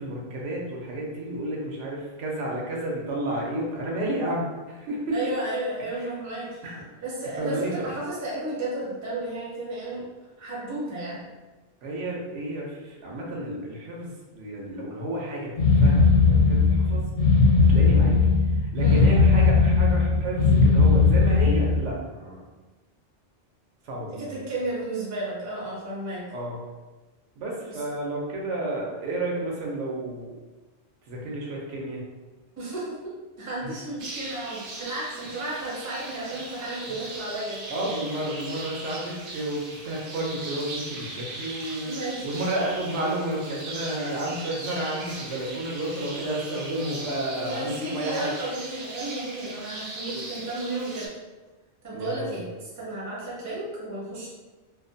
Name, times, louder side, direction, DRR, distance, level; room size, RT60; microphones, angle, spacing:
voice 1, 0.0-5.2 5.9-6.1 6.6-6.8 7.4-7.9 11.8-15.5 15.8-17.1 17.7-18.2 18.6-22.4 23.8-24.4 26.3-26.6 27.4-30.3 31.1-32.0 33.6-33.7 37.7-42.0 42.2-48.3 50.1-50.3 51.9-52.4, right 1 dB, 85° right, -2 dB, 0.9 m, -31 dB
voice 2, 5.1-6.6 7.0-10.0 10.4-11.3 18.8-19.1 24.1-26.2 27.7-27.8 32.6-33.1 33.4-37.7 41.8-42.4 47.3-51.1 51.8-54.3, right 2 dB, 20° right, -6 dB, 0.4 m, -33 dB
sound 1, 15.6-21.9, left 4 dB, 75° left, 0.9 m, -18 dB
sound 2, 34.0-51.1, right 2 dB, 60° right, 0.6 m, -39 dB
2.5 x 2.1 x 2.6 m, 1.2 s
omnidirectional pair, 1.2 m